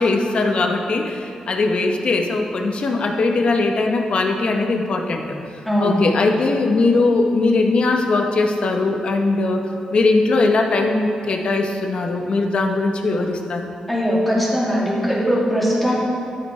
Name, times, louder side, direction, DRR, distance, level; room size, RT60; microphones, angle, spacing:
voice 1, 0.0-5.3 5.8-9.6 9.9-13.7, left 3 dB, 50° left, 3 dB, 0.9 m, -20 dB
voice 2, 13.9-16.0, equal, 5° left, -7 dB, 2.1 m, -20 dB
13.0 x 8.1 x 3.2 m, 2.4 s
wide cardioid pair, 130°, 2 cm